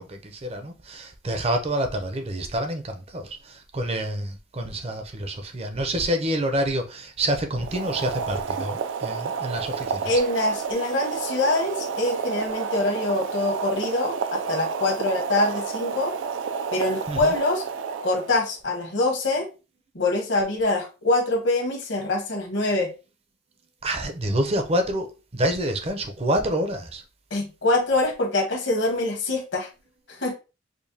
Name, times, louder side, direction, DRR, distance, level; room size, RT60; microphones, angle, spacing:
voice 1, 0.0-10.1 17.1-17.3 23.8-27.0, right 1 dB, 30° right, 0.6 m, -27 dB
Boiling, 7.5-18.5, right 6 dB, 75° right, 0.3 m, -30 dB
voice 2, 10.0-16.1 16.7-17.6 18.0-19.5 19.9-22.9 27.3-29.7 30.1-30.3, left 2 dB, 70° left, 1.2 m, -24 dB
5.0 x 2.2 x 2.7 m
head